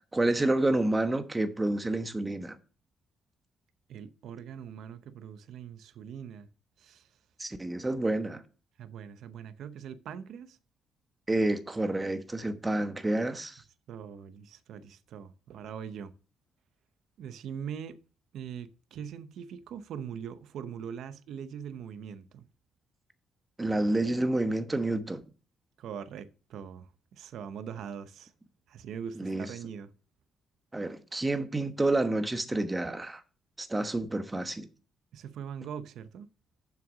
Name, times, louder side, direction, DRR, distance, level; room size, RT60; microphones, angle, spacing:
voice 1, 0.1-2.6 7.4-8.4 11.3-13.6 23.6-25.2 29.2-29.5 30.7-33.2 33.6-34.7, right 2 dB, 15° right, 1.1 m, -29 dB
voice 2, 3.9-6.5 6.8-7.1 8.8-10.6 13.9-16.1 17.2-18.0 18.3-22.5 25.8-28.3 28.7-29.9 35.1-36.3, right 8 dB, 75° right, 0.7 m, -42 dB
7.5 x 5.8 x 6.3 m
cardioid pair, 90°, 0 cm